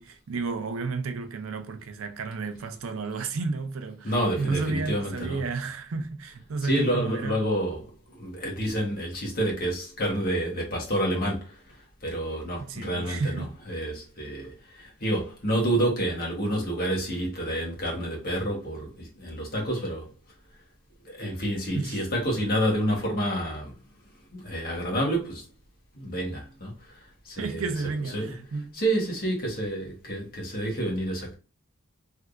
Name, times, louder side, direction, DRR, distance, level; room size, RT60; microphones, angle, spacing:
voice 1, 0.0-7.4 12.6-13.5 21.7-22.0 27.4-28.8, right 4 dB, 70° right, 0.5 m, -32 dB
voice 2, 4.0-5.4 6.6-20.1 21.0-23.8 24.0-25.5 25.9-27.7 28.1-28.4 28.7-31.3, right 1 dB, 45° left, 1.3 m, -29 dB
3.4 x 2.7 x 2.4 m
head